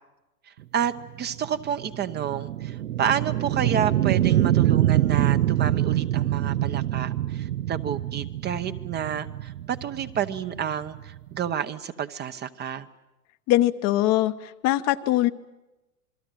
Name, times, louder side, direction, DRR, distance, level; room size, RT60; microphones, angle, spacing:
sound 1, 0.8-11.5, right 13 dB, 80° right, 0.9 m, -25 dB
voice 1, 1.2-12.9, right 8 dB, 20° right, 10 dB, 0.9 m, -30 dB
voice 2, 13.5-15.3, left 15 dB, 35° left, 10 dB, 1.0 m, -22 dB
27.5 x 21.5 x 9.2 m, 1.0 s
hypercardioid pair, 115°, 46 cm